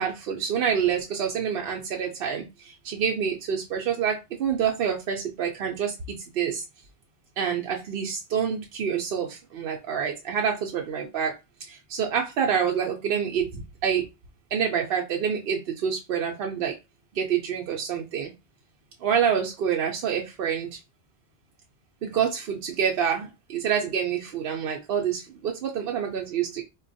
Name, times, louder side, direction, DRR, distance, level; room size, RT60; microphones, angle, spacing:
voice 1, 0.0-5.9 6.3-6.6 7.4-11.4 11.6-14.0 14.5-16.7 17.1-18.3 19.0-20.8 22.0-26.6, right 7 dB, 65° right, 1 dB, 0.7 m, -27 dB
3.9 x 2.2 x 2.6 m, 0.24 s
omnidirectional pair, 1.1 m